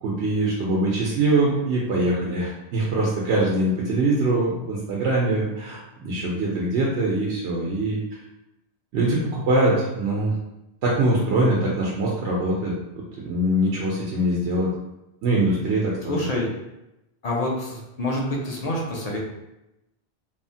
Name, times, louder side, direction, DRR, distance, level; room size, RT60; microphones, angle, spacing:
voice 1, 0.0-8.0 8.9-10.3 10.8-12.7 13.2-14.7 15.2-16.3, right 1 dB, 85° right, -5 dB, 0.9 m, -23 dB
voice 2, 16.1-16.5 17.2-19.2, left 1 dB, 50° left, -2 dB, 0.5 m, -27 dB
3.1 x 2.0 x 2.6 m, 0.92 s
omnidirectional pair, 1.1 m